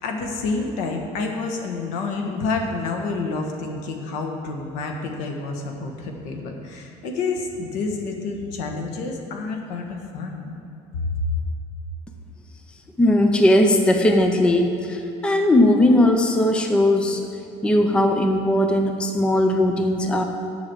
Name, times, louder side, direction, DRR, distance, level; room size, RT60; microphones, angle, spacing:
voice 1, 0.0-10.6 10.9-11.3, left 3 dB, 80° left, 3 dB, 1.3 m, -28 dB
voice 2, 13.0-17.2 17.6-20.2, left 1 dB, 10° left, 5 dB, 0.4 m, -18 dB
7.3 x 6.1 x 7.9 m, 2.9 s
cardioid pair, 170°, 13 cm